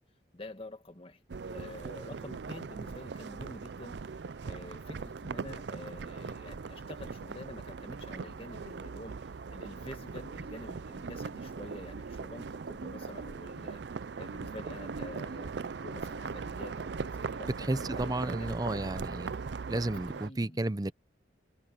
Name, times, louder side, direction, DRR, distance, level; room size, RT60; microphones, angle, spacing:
voice 1, 0.3-1.2 1.5-4.0 4.4-13.8 14.2-19.0 20.1-20.7, left 1 dB, 30° left, 1.7 m, -48 dB
sound 1, 1.3-20.3, right 5 dB, 65° right, 0.5 m, -40 dB
voice 2, 17.4-19.3 19.7-20.9, right 1 dB, 20° right, 0.6 m, -32 dB
head